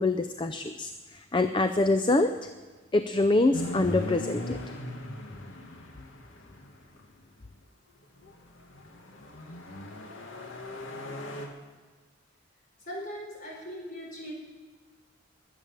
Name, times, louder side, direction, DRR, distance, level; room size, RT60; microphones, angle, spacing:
voice 1, 0.0-2.3 2.9-4.6, left 2 dB, 25° left, 9 dB, 0.5 m, -25 dB
sound 1, 3.5-7.1 8.2-11.5, left 1 dB, 75° left, 2.1 m, -39 dB
voice 2, 12.8-14.3, equal, 40° left, -2 dB, 5.0 m, -39 dB
21.0 x 8.3 x 7.3 m, 1.4 s
head